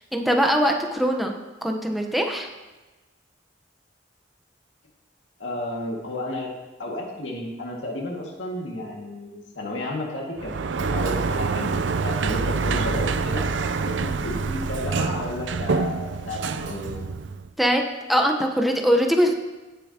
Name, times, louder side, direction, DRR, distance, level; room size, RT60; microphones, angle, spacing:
voice 1, 0.0-1.3 1.6-2.5 17.6-17.8 18.1-19.3, equal, ahead, 2 dB, 0.9 m, -21 dB
voice 2, 5.4-6.5 6.8-10.5 10.8-11.7 12.0-13.4 13.8-17.1, left 1 dB, 85° left, -1 dB, 2.0 m, -32 dB
Sliding door, 10.4-17.5, right 4 dB, 75° right, 0.5 m, -26 dB
16.5 x 6.9 x 2.9 m, 1.1 s
head